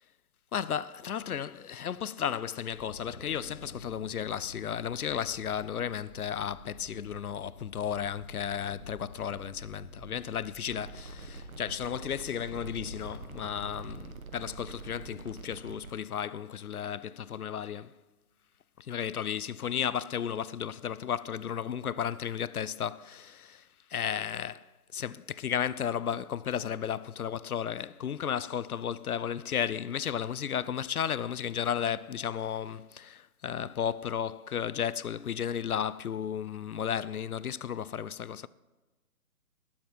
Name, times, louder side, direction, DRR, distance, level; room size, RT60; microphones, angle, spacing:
voice 1, 0.5-18.0 18.8-38.5, left 8 dB, 70° left, 0.5 m, -34 dB
sound 1, 2.7-14.0, left 1 dB, 15° left, 1.5 m, -49 dB
sound 2, 10.7-15.9, right 4 dB, 65° right, 1.5 m, -46 dB
19.5 x 7.3 x 4.7 m
figure-of-eight pair, 150°, 46 cm